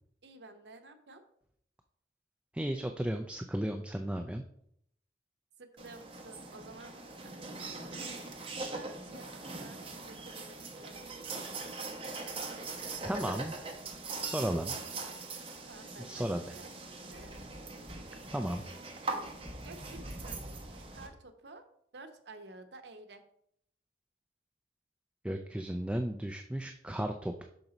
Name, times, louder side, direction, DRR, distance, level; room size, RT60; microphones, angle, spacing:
voice 1, 0.2-1.2 5.6-7.0 7.2-8.0 8.6-11.2 15.7-17.3 19.6-21.6 21.9-23.2, right 2 dB, 75° right, 7 dB, 0.8 m, -52 dB
voice 2, 2.5-4.4 13.0-13.6 14.2-14.8 16.0-16.6 18.3-18.6 25.2-27.4, right 1 dB, 5° right, 5 dB, 0.3 m, -34 dB
sound 1, 5.8-21.1, right 3 dB, 30° right, 1.0 m, -41 dB
6.0 x 5.3 x 3.9 m, 0.70 s
head